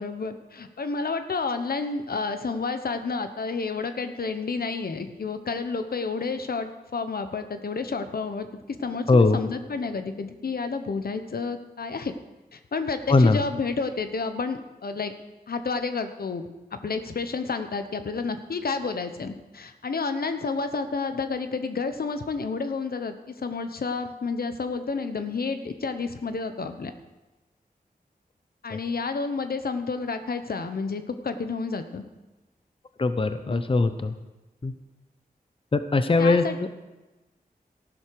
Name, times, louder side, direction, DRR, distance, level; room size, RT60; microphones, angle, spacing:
voice 1, 0.0-12.2 12.5-15.1 15.5-16.5 16.8-26.9 28.6-32.0 33.5-33.6 36.2-36.6, left 4 dB, 70° left, 8 dB, 1.0 m, -30 dB
voice 2, 9.1-9.4 13.1-13.4 28.7-28.8 33.0-34.1 34.6-34.7 35.7-36.4, left 3 dB, 35° left, 10 dB, 0.7 m, -20 dB
14.5 x 11.5 x 4.8 m, 1.1 s
wide cardioid pair, 80°, 16 cm